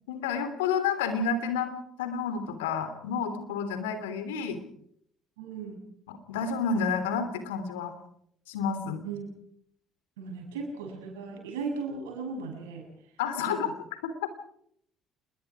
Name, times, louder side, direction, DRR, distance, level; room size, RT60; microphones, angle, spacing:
voice 1, 0.1-1.7 2.0-4.6 6.1-7.9 8.5-9.0 13.2-13.7 14.0-14.1, left 6 dB, 80° left, 10 dB, 3.1 m, -30 dB
voice 2, 5.4-5.8 9.0-9.3 10.2-12.9 13.4-13.6, right 4 dB, 80° right, 3 dB, 6.9 m, -36 dB
27.5 x 21.5 x 4.8 m, 0.68 s
hypercardioid pair, 55°, 0 cm